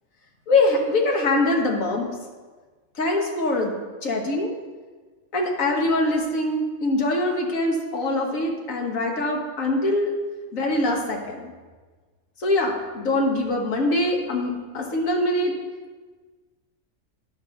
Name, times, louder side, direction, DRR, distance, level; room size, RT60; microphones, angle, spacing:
voice 1, 0.5-2.1 3.0-3.8 4.0-4.5 5.3-10.1 10.5-11.5 12.4-15.5, left 2 dB, 90° left, 1 dB, 1.7 m, -23 dB
10.0 x 4.1 x 6.5 m, 1.4 s
omnidirectional pair, 1.3 m